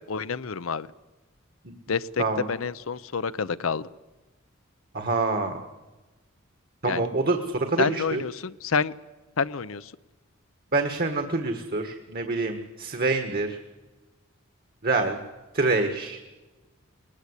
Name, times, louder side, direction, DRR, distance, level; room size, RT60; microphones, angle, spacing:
voice 1, 0.1-0.9 1.9-3.9 6.8-7.0 7.8-8.9 9.4-9.9, left 5 dB, 80° left, 13 dB, 0.7 m, -28 dB
voice 2, 4.9-5.6 6.8-8.2 10.7-13.6 14.8-15.2 15.5-16.2, right 3 dB, 50° right, 6 dB, 1.7 m, -26 dB
21.5 x 20.5 x 8.2 m, 1.2 s
head